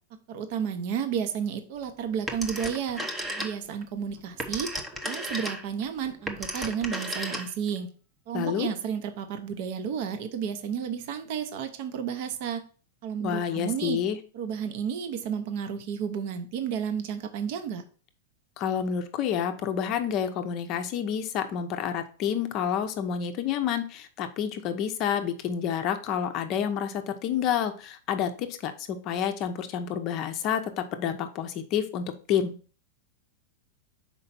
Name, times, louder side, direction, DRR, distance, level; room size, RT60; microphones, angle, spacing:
voice 1, 0.3-3.0 3.4-4.8 5.0-7.9 8.3-12.6 13.0-14.0 14.3-17.9, right 7 dB, 45° right, 8 dB, 0.8 m, -32 dB
Telephone, 2.3-3.8 4.2-7.8, equal, 5° right, 0.7 m, -34 dB
voice 2, 8.3-8.7 13.2-14.2 18.6-32.5, left 8 dB, 30° left, 6 dB, 0.6 m, -29 dB
5.6 x 4.5 x 4.1 m, 0.39 s
supercardioid pair, 165°, 0 cm